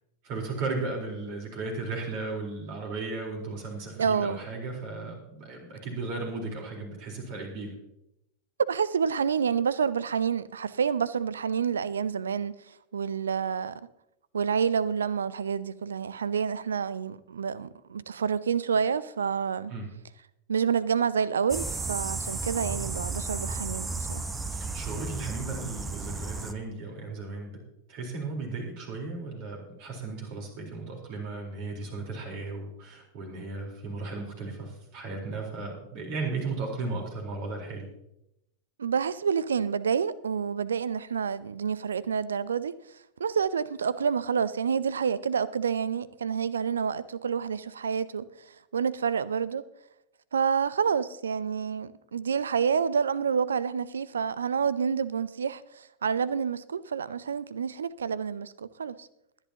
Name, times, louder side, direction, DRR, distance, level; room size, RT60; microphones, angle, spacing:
voice 1, 0.2-7.7 19.7-19.9 24.5-27.6 27.9-37.9, right 3 dB, 45° right, 4.0 m, -35 dB
voice 2, 4.0-4.4 8.7-12.5 12.9-13.8 14.3-19.7 20.5-24.3 38.8-42.8 43.2-48.3 48.7-49.6 50.3-59.1, right 6 dB, 70° right, 0.5 m, -28 dB
sound 1, 21.5-26.5, right 3 dB, 15° right, 0.9 m, -33 dB
21.0 x 10.5 x 2.9 m
figure-of-eight pair, 90°, 0 cm